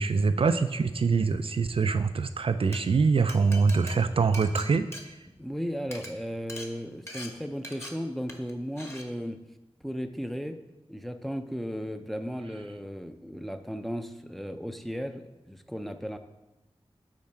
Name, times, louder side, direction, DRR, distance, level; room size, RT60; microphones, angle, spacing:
voice 1, 0.0-4.9, right 4 dB, 55° right, 9 dB, 0.3 m, -24 dB
Glass, 2.7-2.8 3.3-5.6 5.8-6.1 6.5-6.7 7.1-7.3 7.6-7.9 8.3-8.5 8.8-9.0, equal, 25° left, 1.2 m, -41 dB
voice 2, 5.4-9.4 9.8-10.6 10.9-16.2, equal, ahead, 7 dB, 0.5 m, -35 dB
7.4 x 4.4 x 4.4 m, 1.0 s
cardioid pair, 45°, 11 cm